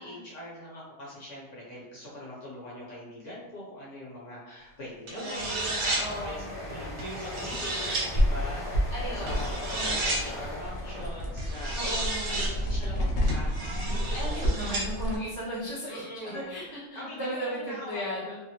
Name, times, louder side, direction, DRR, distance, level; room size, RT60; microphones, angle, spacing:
voice 1, 0.0-5.8 6.2-13.6 15.9-16.6 16.9-18.3, equal, 55° left, -5 dB, 0.9 m, -42 dB
voice 2, 5.1-6.5 8.9-10.1 11.7-12.5 14.1-18.4, equal, 25° right, -10 dB, 0.5 m, -36 dB
sound 1, 5.1-6.0 7.0-8.0 9.3-10.2 11.4-12.5 13.3-14.8, right 2 dB, 70° right, 1.3 m, -32 dB
sound 2, 5.3-12.8 13.1-13.4, left 1 dB, 5° left, 0.8 m, -40 dB
sound 3, 8.1-15.2, equal, 80° left, 0.5 m, -30 dB
2.8 x 2.5 x 2.8 m, 1.1 s
omnidirectional pair, 1.8 m